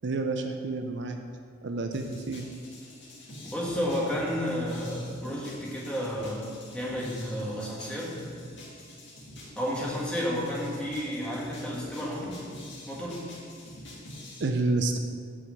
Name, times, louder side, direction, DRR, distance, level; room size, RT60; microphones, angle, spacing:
voice 1, 0.0-1.2 1.6-2.5 14.4-15.0, right 3 dB, 60° right, 5 dB, 0.5 m, -29 dB
sound 1, 1.9-14.4, left 1 dB, 55° left, 2.0 m, -46 dB
voice 2, 3.4-8.2 9.5-12.5 12.9-13.4, equal, 5° left, -5 dB, 1.7 m, -32 dB
8.5 x 4.7 x 7.5 m, 2.1 s
head